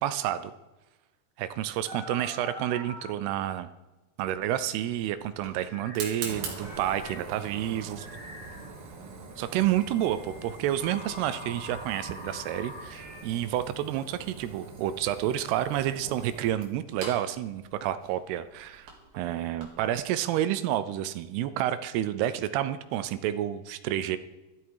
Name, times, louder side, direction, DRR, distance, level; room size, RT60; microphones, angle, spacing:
voice 1, 0.0-0.5 1.4-3.7 4.2-8.1 9.4-18.9 19.2-24.2, right 12 dB, 80° right, 12 dB, 2.5 m, -29 dB
sound 1, 1.8-3.1 5.6-6.1 6.6-8.7 9.6-13.2, left 2 dB, 5° right, 4.7 m, -45 dB
Fire, 4.3-19.9, right 4 dB, 60° right, 3.6 m, -44 dB
13.0 x 12.5 x 4.7 m, 1.1 s
omnidirectional pair, 4.9 m